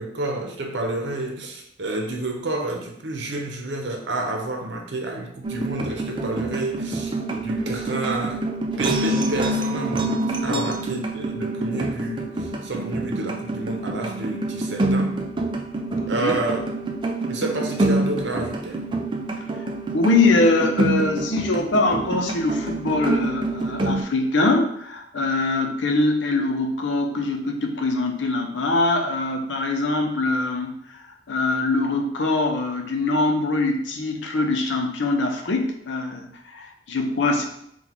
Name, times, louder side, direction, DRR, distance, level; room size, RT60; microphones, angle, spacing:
voice 1, 0.0-8.4 8.8-15.2 16.1-16.6 17.3-18.9, right 2 dB, 75° right, 2 dB, 0.8 m, -29 dB
sound 1, 5.4-24.0, right 2 dB, 25° right, 0.4 m, -26 dB
voice 2, 16.0-16.3 19.5-37.5, left 2 dB, 85° left, 3 dB, 0.7 m, -23 dB
4.0 x 2.4 x 4.4 m, 0.71 s
head